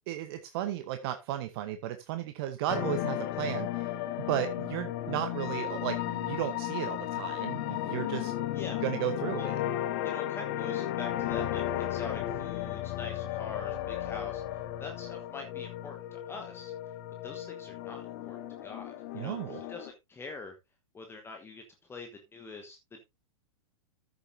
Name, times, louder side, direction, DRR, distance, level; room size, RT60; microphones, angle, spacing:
voice 1, 0.1-3.9 4.3-8.3 8.8-9.6 19.1-19.6, right 12 dB, 45° right, 9 dB, 0.9 m, -34 dB
sound 1, 2.7-19.9, left 13 dB, 40° left, 1.0 m, -34 dB
voice 2, 8.5-8.9 9.4-9.5 10.0-16.7 17.2-20.6 20.9-21.6 21.9-23.0, left 4 dB, 15° left, 3 dB, 1.2 m, -44 dB
14.0 x 6.9 x 2.7 m, 0.23 s
figure-of-eight pair, 100°, 18 cm